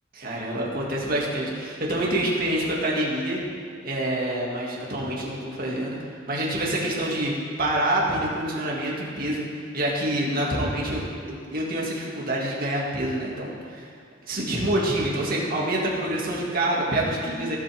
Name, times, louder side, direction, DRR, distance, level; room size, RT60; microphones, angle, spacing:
voice 1, 0.1-3.4 3.8-6.0 6.3-7.3 7.6-9.5 9.7-13.9 14.3-17.6, right 1 dB, 50° right, -4 dB, 2.3 m, -26 dB
17.0 x 7.6 x 3.6 m, 2.2 s
head